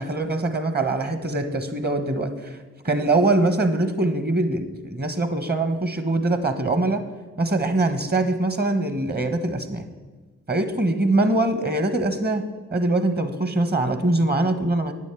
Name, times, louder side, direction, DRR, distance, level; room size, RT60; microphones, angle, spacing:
voice 1, 0.0-2.6 2.8-7.0 7.4-9.9 10.5-12.5 12.7-14.9, right 2 dB, 30° right, 9 dB, 1.4 m, -23 dB
9.3 x 8.3 x 8.4 m, 1.3 s
cardioid pair, 75°, 32 cm